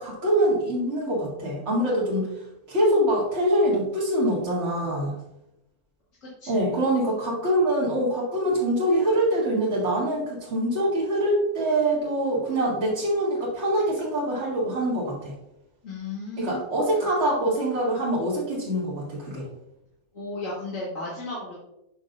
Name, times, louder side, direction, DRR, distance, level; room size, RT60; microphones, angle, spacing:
voice 1, 0.0-2.3 2.7-5.2 6.5-15.3 16.4-19.5, right 1 dB, 50° right, -6 dB, 2.5 m, -24 dB
voice 2, 6.2-6.8 15.8-16.6 20.1-21.5, left 2 dB, 60° left, -8 dB, 2.2 m, -34 dB
7.7 x 6.3 x 2.6 m, 0.86 s
omnidirectional pair, 1.6 m